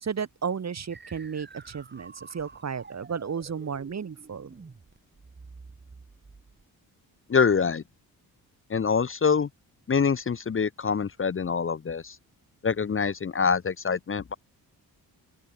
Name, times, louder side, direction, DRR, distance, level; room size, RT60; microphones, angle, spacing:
voice 1, 0.0-4.5, right 6 dB, 45° right, 2.6 m, -33 dB
sound 1, 0.9-6.6, right 4 dB, 25° right, 3.1 m, -49 dB
voice 2, 7.3-7.8 8.7-9.5 9.9-12.1 12.6-14.4, left 6 dB, 35° left, 1.1 m, -25 dB
open air
cardioid pair, 85°, 38 cm